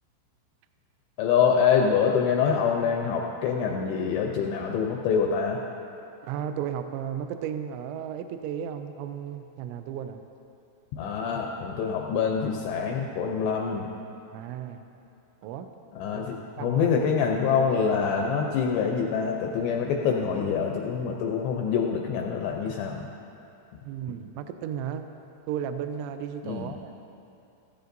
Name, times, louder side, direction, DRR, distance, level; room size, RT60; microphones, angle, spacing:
voice 1, 1.2-5.6 11.0-13.9 16.0-23.0 26.4-26.7, left 6 dB, 85° left, 1 dB, 2.5 m, -25 dB
voice 2, 6.2-10.2 14.3-14.8 15.4-15.7 16.1-16.2 16.6-17.0 23.8-25.1 25.5-27.0, right 9 dB, 90° right, 8 dB, 2.6 m, -34 dB
17.5 x 14.5 x 2.6 m, 2.8 s
omnidirectional pair, 5.8 m